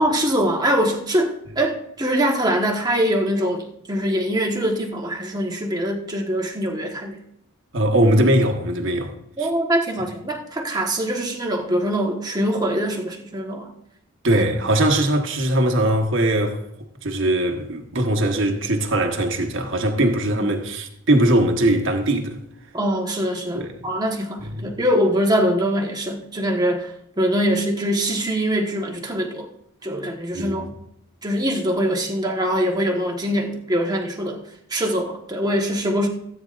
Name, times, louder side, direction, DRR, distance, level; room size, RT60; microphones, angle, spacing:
voice 1, 0.0-7.2 9.4-13.7 14.4-14.5 20.3-20.5 22.7-29.5 29.8-30.8 31.2-34.4 34.7-36.1, equal, 20° right, 1.4 m, -23 dB
voice 2, 7.7-9.5 14.2-16.6 17.0-22.4 23.5-23.9 24.4-24.8 30.3-30.7, right 1 dB, 65° right, 1.3 m, -21 dB
17.0 x 9.2 x 2.5 m
head